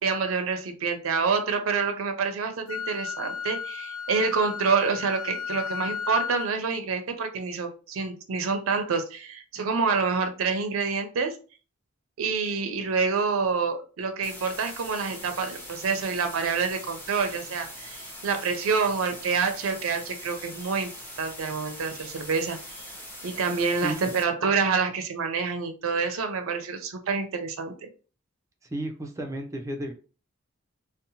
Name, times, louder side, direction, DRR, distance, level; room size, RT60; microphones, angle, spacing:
voice 1, 0.0-11.4 12.2-20.9 21.2-22.6 23.2-27.9, right 5 dB, 85° right, 7 dB, 0.5 m, -27 dB
Wind instrument woodwind instrument, 2.7-6.5, left 7 dB, 65° left, 0.4 m, -34 dB
sound 1, 14.2-24.2, equal, 10° left, 0.8 m, -42 dB
voice 2, 23.8-24.1 28.6-29.9, right 1 dB, 15° right, 3 dB, 0.4 m, -33 dB
2.7 x 2.0 x 2.7 m, 0.36 s
head